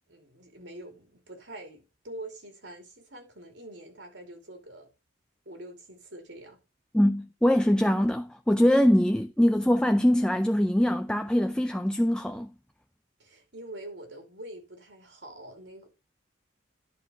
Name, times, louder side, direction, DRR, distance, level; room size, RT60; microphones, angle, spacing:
voice 1, 0.1-4.9 5.4-6.6 13.2-15.9, right 1 dB, 70° right, 2.7 m, -45 dB
voice 2, 6.9-12.5, equal, 5° left, 0.4 m, -23 dB
11.0 x 4.5 x 6.0 m
head